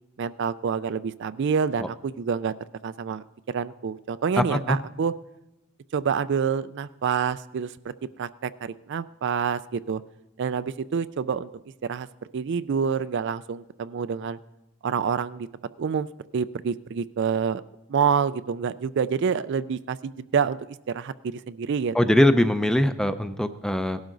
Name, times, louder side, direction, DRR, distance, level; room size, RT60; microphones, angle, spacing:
voice 1, 0.2-2.5 2.8-5.1 5.9-7.9 8.2-10.0 10.4-11.5 11.8-12.1 12.3-14.4 14.8-15.5 15.8-16.1 16.3-17.6 17.9-20.6 20.9-21.9, right 6 dB, 55° right, 14 dB, 0.4 m, -27 dB
voice 2, 21.9-24.0, left 1 dB, 5° left, 10 dB, 0.5 m, -21 dB
17.5 x 12.0 x 3.9 m, 0.94 s
head